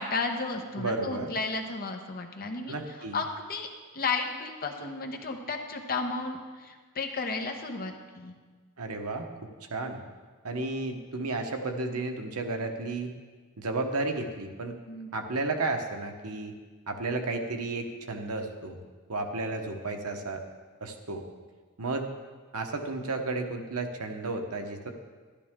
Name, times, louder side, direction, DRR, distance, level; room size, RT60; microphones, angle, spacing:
voice 1, 0.0-2.7 3.1-3.7 3.9-8.3 14.9-15.1, left 3 dB, 45° left, 3 dB, 1.0 m, -33 dB
voice 2, 0.8-1.3 2.7-3.2 8.8-9.3 9.7-10.0 10.4-13.1 13.6-14.8 15.1-16.5 16.9-18.8 19.1-20.4 20.8-21.2 21.8-22.1 22.5-24.9, right 3 dB, 80° right, 4 dB, 1.1 m, -32 dB
12.0 x 12.0 x 3.7 m, 1.4 s
head